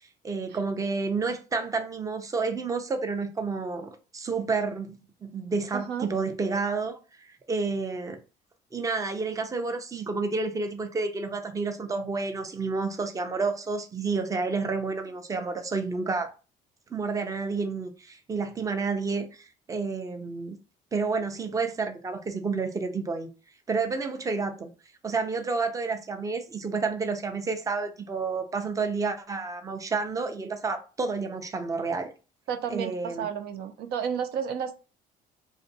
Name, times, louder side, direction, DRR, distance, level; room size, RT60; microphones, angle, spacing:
voice 1, 0.2-5.0 5.2-7.0 7.5-8.2 8.7-16.3 16.9-20.6 20.9-23.3 23.7-24.7 25.0-32.1 32.7-33.3, right 4 dB, 20° right, 0.6 m, -30 dB
voice 2, 5.7-6.1 32.5-34.7, right 7 dB, 70° right, 0.5 m, -32 dB
2.5 x 2.5 x 3.9 m
cardioid pair, 110°, 17 cm